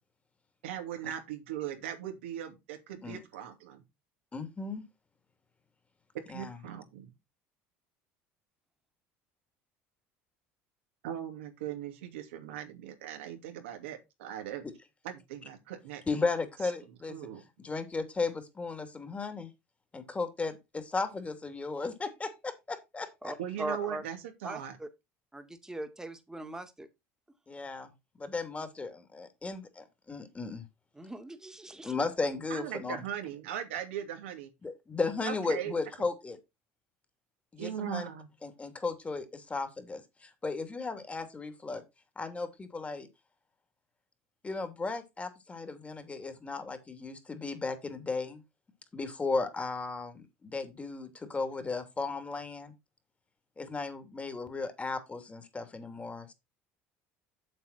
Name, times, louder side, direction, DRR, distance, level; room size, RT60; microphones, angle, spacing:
voice 1, 0.6-3.8 6.1-7.1 11.0-14.6 15.0-16.0 17.1-17.4 23.4-24.8 32.5-34.5 35.2-35.7 37.6-38.3, right 10 dB, 85° right, 2.5 m, -39 dB
voice 2, 4.3-4.8 6.3-6.6 16.1-17.2 17.6-19.5 19.9-23.4 27.5-27.9 28.2-30.7 31.8-33.0 34.6-36.4 37.5-38.1 38.4-41.8 42.2-43.1 44.4-48.4 48.9-52.7 53.6-56.3, left 3 dB, 20° left, 2.8 m, -35 dB
voice 3, 23.2-24.0 24.4-24.9 25.3-26.9 31.0-31.9, right 1 dB, 10° right, 2.2 m, -40 dB
7.8 x 7.6 x 4.4 m
hypercardioid pair, 80°, 6 cm